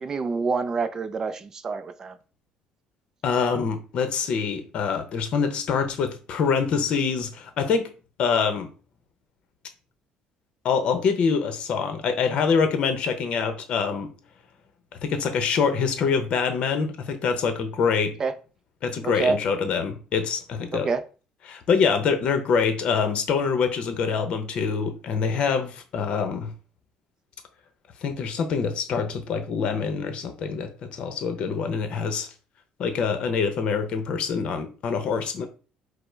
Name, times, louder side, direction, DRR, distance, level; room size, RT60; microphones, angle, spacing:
voice 1, 0.0-2.2 18.2-18.3 19.0-19.4 20.7-21.0, right 4 dB, 25° right, 0.4 m, -27 dB
voice 2, 3.2-7.9 8.2-8.7 10.6-14.1 15.0-18.1 18.8-20.9 21.5-26.5 28.0-32.3 32.8-35.5, left 5 dB, 45° left, 0.8 m, -25 dB
5.1 x 2.1 x 4.5 m
cardioid pair, 165°, 2 cm